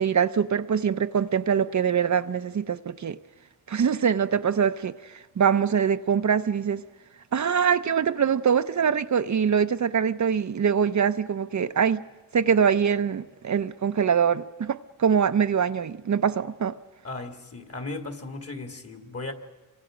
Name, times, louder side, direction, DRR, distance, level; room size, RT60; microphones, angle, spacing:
voice 1, 0.0-3.2 3.7-6.8 7.3-12.0 12.3-16.8, right 7 dB, 55° right, 0.7 m, -23 dB
voice 2, 17.0-19.3, left 2 dB, 40° left, 2.5 m, -36 dB
29.0 x 24.0 x 5.1 m
wide cardioid pair, 115°, 36 cm